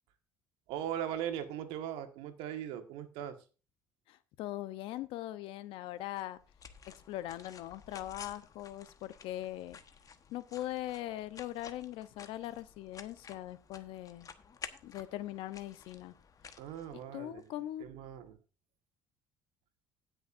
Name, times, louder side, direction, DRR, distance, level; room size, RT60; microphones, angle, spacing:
voice 1, 0.7-3.3 16.6-17.4 17.8-18.4, right 10 dB, 75° right, 1.5 m, -39 dB
voice 2, 4.1-6.4 6.9-9.8 10.3-14.3 14.8-16.1 16.9-17.9, left 14 dB, 75° left, 0.8 m, -41 dB
sound 1, 6.2-17.5, left 6 dB, 40° left, 1.2 m, -53 dB
19.0 x 6.5 x 2.6 m
supercardioid pair, 75°, 9 cm